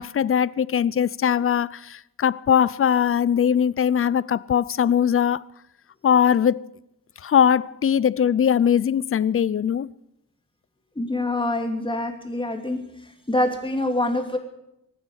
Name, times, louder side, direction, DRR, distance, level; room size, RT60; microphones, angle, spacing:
voice 1, 0.0-5.4 6.0-6.7 7.2-9.9, left 8 dB, 40° left, 0.5 m, -21 dB
voice 2, 11.0-12.8 13.3-14.4, left 1 dB, 15° left, 2.7 m, -25 dB
23.5 x 9.4 x 6.4 m
wide cardioid pair, 130°, 33 cm